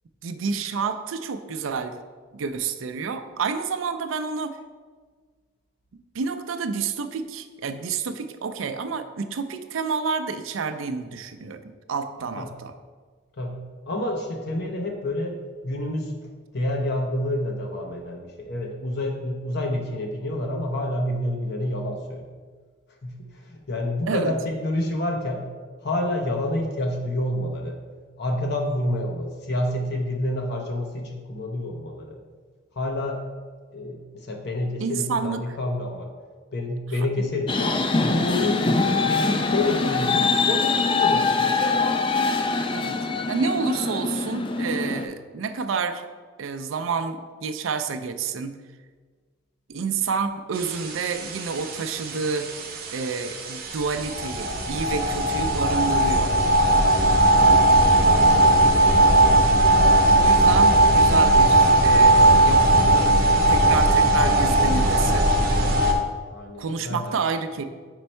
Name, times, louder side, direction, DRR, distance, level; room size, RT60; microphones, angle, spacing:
voice 1, 0.2-2.0 2.3-4.6 6.1-12.7 24.1-24.3 34.8-35.6 42.7-43.0 43.3-46.1 46.4-48.5 49.7-52.5 52.9-56.3 60.2-63.2 63.5-65.3 66.6-67.6, right 5 dB, 80° right, 9 dB, 0.4 m, -29 dB
voice 2, 13.9-15.4 15.6-22.2 23.0-25.4 25.8-27.8 28.2-32.2 32.8-33.2 33.7-36.1 36.5-41.6 55.1-55.2 57.0-57.1 57.6-59.1 66.3-67.2, left 1 dB, 55° left, 2 dB, 0.7 m, -28 dB
sound 1, 37.5-45.1, left 4 dB, 25° left, 0.3 m, -23 dB
sound 2, 50.5-65.9, right 1 dB, 50° right, 0.8 m, -18 dB
5.2 x 4.5 x 4.4 m, 1.5 s
head